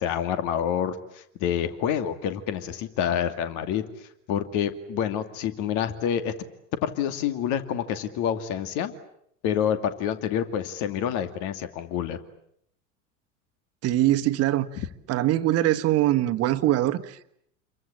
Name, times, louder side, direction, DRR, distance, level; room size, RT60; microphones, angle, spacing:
voice 1, 0.0-3.8 4.3-6.3 6.8-8.9 9.4-12.2 14.8-14.9, left 9 dB, 50° left, 2.5 m, -27 dB
voice 2, 13.8-14.8 15.1-17.3, right 14 dB, 40° right, 1.5 m, -23 dB
29.0 x 23.0 x 8.8 m
figure-of-eight pair, 75°, 39 cm